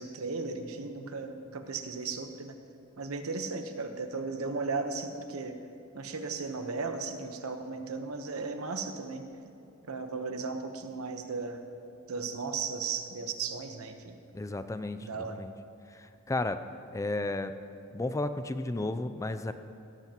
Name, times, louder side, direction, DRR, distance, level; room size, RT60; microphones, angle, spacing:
voice 1, 0.0-2.5 3.0-5.6 5.9-9.3 9.8-11.6 12.1-14.1 15.0-15.4, right 4 dB, 90° right, 6 dB, 1.0 m, -36 dB
voice 2, 14.3-15.5 15.9-16.6 16.9-17.5 17.9-19.5, left 2 dB, 15° left, 10 dB, 0.4 m, -33 dB
16.5 x 14.0 x 3.0 m, 2.8 s
head